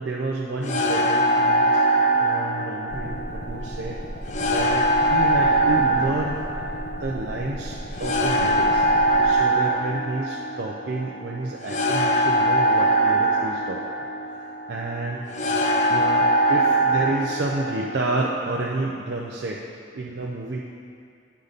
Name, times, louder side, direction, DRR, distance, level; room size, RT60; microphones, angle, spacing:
voice 1, 0.0-1.8 2.2-4.0 4.4-6.4 6.9-8.8 9.2-13.8 14.7-15.3 15.9-19.6 19.9-20.6, right 2 dB, 65° right, -2 dB, 0.5 m, -30 dB
sound 1, 0.6-18.4, right 1 dB, 40° left, 0.4 m, -22 dB
sound 2, 2.9-9.3, equal, 55° left, 0.9 m, -36 dB
9.6 x 4.0 x 5.1 m, 2.5 s
head